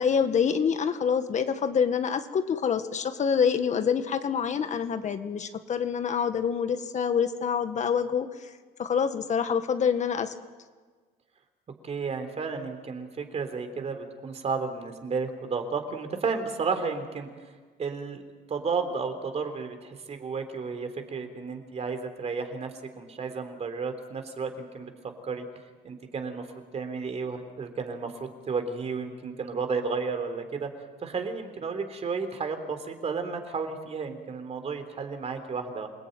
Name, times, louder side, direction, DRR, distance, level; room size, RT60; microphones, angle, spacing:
voice 1, 0.0-8.5 8.8-10.3, left 7 dB, 45° left, 9 dB, 1.7 m, -26 dB
voice 2, 11.8-17.3 17.8-18.2 18.5-24.9 25.2-25.4 25.8-26.5 26.7-30.7 31.0-35.9, right 5 dB, 40° right, 7 dB, 3.7 m, -32 dB
28.0 x 19.5 x 9.4 m, 1.5 s
cardioid pair, 110°, 17 cm